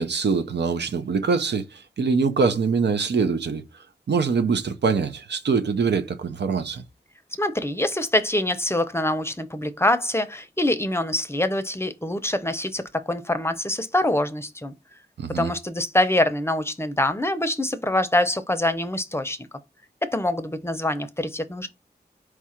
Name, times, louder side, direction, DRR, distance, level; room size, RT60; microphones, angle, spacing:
voice 1, 0.0-3.6 4.1-6.8 15.2-15.5, right 5 dB, 80° right, 0.6 m, -23 dB
voice 2, 7.4-14.7 15.4-19.4 20.0-21.7, left 1 dB, 15° left, 0.6 m, -24 dB
4.6 x 2.4 x 4.2 m
cardioid pair, 55°, 18 cm